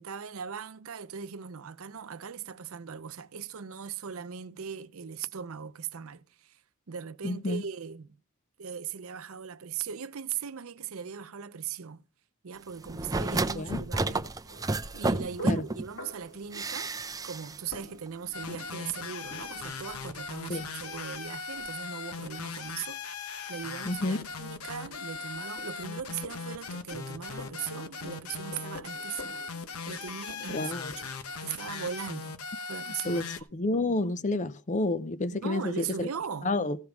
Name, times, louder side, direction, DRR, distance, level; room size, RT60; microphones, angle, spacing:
voice 1, 0.0-6.6 6.9-8.2 8.6-12.0 12.4-14.3 14.9-16.9 17.2-23.0 23.5-29.4 29.9-31.2 31.4-32.3 32.7-33.3 35.4-36.6, right 7 dB, 75° right, 0.6 m, -39 dB
voice 2, 7.2-7.6 13.6-13.8 15.4-15.6 20.5-20.7 23.9-24.2 30.5-30.9 33.1-33.2 33.5-36.1 36.4-36.8, left 2 dB, 35° left, 0.6 m, -29 dB
sound 1, 12.9-15.9 16.5-17.6 17.8-17.9, right 2 dB, 15° right, 0.6 m, -31 dB
sound 2, 14.5-32.0, left 1 dB, 55° left, 2.3 m, -51 dB
sound 3, 18.3-33.4, left 5 dB, 85° left, 1.0 m, -39 dB
15.0 x 5.2 x 6.0 m
head